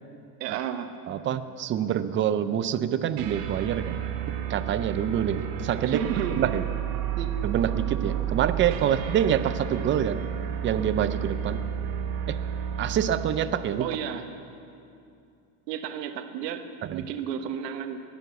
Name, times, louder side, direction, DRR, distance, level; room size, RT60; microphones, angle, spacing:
voice 1, 0.4-0.9 5.9-6.4 7.2-7.3 8.8-8.9 13.8-14.2 15.7-16.6 16.9-18.0, right 9 dB, 85° right, 8 dB, 1.3 m, -32 dB
voice 2, 1.1-4.0 4.3-6.0 6.3-6.6 7.4-10.2 10.6-11.6 12.3-12.4 12.8-13.9 16.8-17.0, right 9 dB, 25° right, 12 dB, 0.5 m, -26 dB
sound 1, 3.2-13.5, right 9 dB, 65° right, 1.5 m, -31 dB
20.0 x 7.2 x 8.0 m, 2.6 s
supercardioid pair, 130°, 47 cm